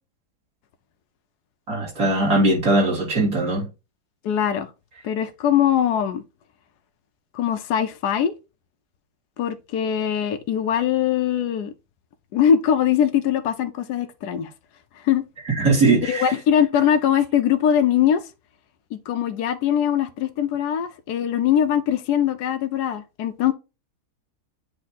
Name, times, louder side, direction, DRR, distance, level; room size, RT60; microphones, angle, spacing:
voice 1, 1.7-3.7 15.6-16.3, right 2 dB, 55° right, 3.3 m, -20 dB
voice 2, 4.2-4.7 5.0-6.2 7.3-8.3 9.4-11.7 12.3-14.5 15.0-15.2 16.0-18.2 18.9-23.5, left 9 dB, 85° left, 1.2 m, -21 dB
8.4 x 3.0 x 4.1 m
omnidirectional pair, 1.7 m